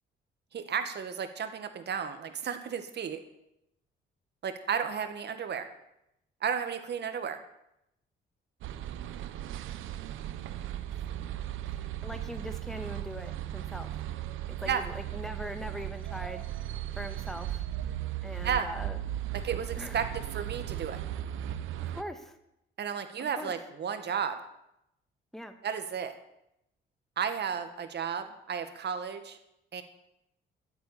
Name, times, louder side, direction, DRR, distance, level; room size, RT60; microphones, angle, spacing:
voice 1, 0.5-3.2 4.4-5.7 6.4-7.4 14.7-14.8 18.4-18.7 19.4-21.0 22.8-24.4 25.6-26.1 27.2-29.4 29.7-29.8, right 7 dB, 60° right, 8 dB, 1.9 m, -33 dB
sound 1, 8.6-22.0, right 12 dB, 85° right, 0.9 m, -37 dB
voice 2, 11.6-14.0 14.5-16.4 17.0-17.6 18.2-19.0 19.8-20.0 21.8-22.4 23.2-23.5 25.3-25.6, equal, ahead, 7 dB, 1.8 m, -41 dB
14.0 x 8.2 x 8.7 m, 0.82 s
cardioid pair, 90°, 20 cm